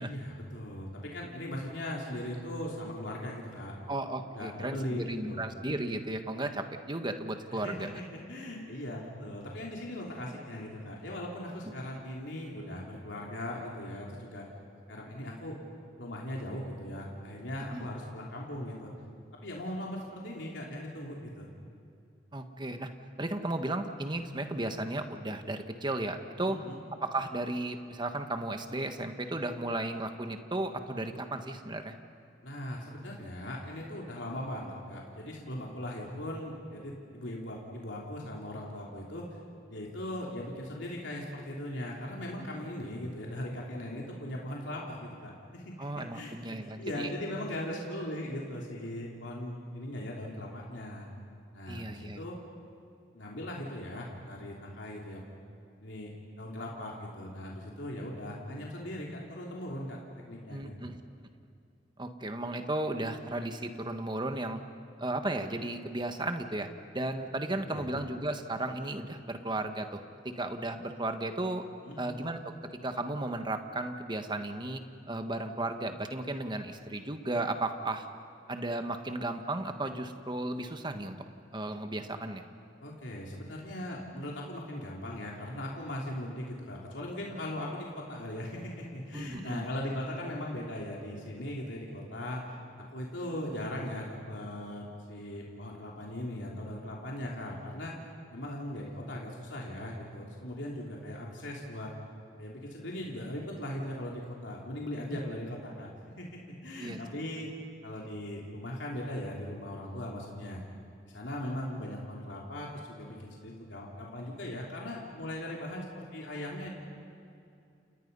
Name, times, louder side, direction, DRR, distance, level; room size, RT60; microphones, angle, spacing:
voice 1, 0.0-3.7 4.3-5.5 7.5-14.5 14.9-15.6 16.0-18.9 19.4-21.5 26.4-26.8 32.4-39.3 39.7-51.1 51.5-52.4 53.1-55.2 55.8-56.1 56.4-60.9 67.7-67.9 71.8-72.1 82.8-97.9 98.3-101.9 102.4-105.9 106.2-107.5 107.8-110.6 111.0-116.7, left 1 dB, 75° left, -3 dB, 3.4 m, -39 dB
voice 2, 3.9-7.9 17.7-17.9 22.3-22.9 23.2-26.6 27.0-31.9 42.4-42.7 45.8-47.1 51.7-52.2 60.5-61.0 62.0-64.6 65.0-71.6 72.0-72.5 72.8-74.8 75.1-78.1 78.5-81.2 81.5-82.4 89.1-89.7 105.1-105.3 106.8-107.0, right 2 dB, 25° right, 6 dB, 1.5 m, -35 dB
30.0 x 29.0 x 5.5 m, 2.5 s
head